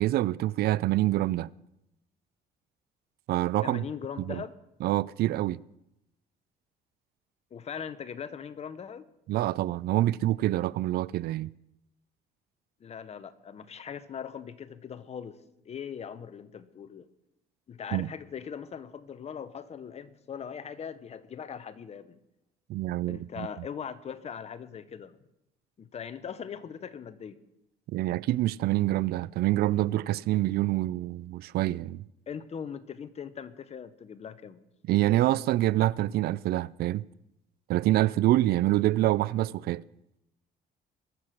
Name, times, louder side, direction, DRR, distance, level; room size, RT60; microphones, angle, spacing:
voice 1, 0.0-1.5 3.3-3.8 4.2-4.4 4.8-5.6 9.3-11.5 17.9-18.1 22.7-23.5 27.9-32.0 34.9-37.0 37.7-39.8, right 15 dB, 70° right, 0.4 m, -26 dB
voice 2, 3.6-4.5 7.5-9.0 12.8-17.1 17.7-22.2 23.1-25.2 25.8-27.4 32.3-34.6, left 7 dB, 40° left, 1.0 m, -40 dB
21.5 x 7.6 x 6.4 m
cardioid pair, 110°, 17 cm